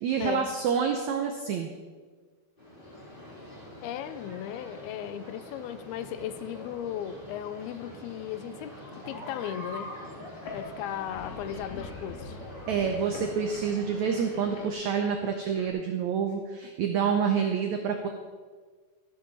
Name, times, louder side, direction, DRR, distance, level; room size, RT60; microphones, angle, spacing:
voice 1, 0.0-1.7 12.7-18.1, right 7 dB, 85° right, 4 dB, 1.6 m, -28 dB
sound 1, 2.6-14.7, left 1 dB, 15° left, 2.5 m, -44 dB
voice 2, 3.8-9.9 10.5-12.4, left 10 dB, 90° left, 12 dB, 2.6 m, -36 dB
sound 2, 10.3-15.7, left 3 dB, 55° left, 2.6 m, -45 dB
14.0 x 12.5 x 4.2 m, 1.5 s
omnidirectional pair, 4.4 m